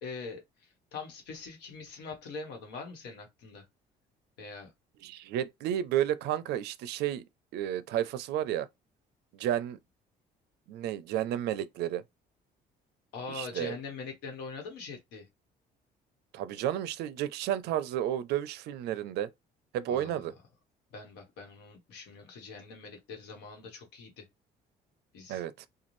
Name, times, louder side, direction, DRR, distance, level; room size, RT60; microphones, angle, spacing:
voice 1, 0.0-3.6 4.4-4.7 13.1-15.3 19.9-20.2 20.9-24.3 25.1-25.4, left 4 dB, 85° left, 1.2 m, -43 dB
voice 2, 5.0-7.2 7.5-8.7 9.3-9.8 10.7-12.0 13.3-13.8 16.3-19.3 19.7-20.3 25.3-25.7, right 11 dB, 80° right, 0.4 m, -32 dB
2.6 x 2.3 x 3.0 m
cardioid pair, 110°, 17 cm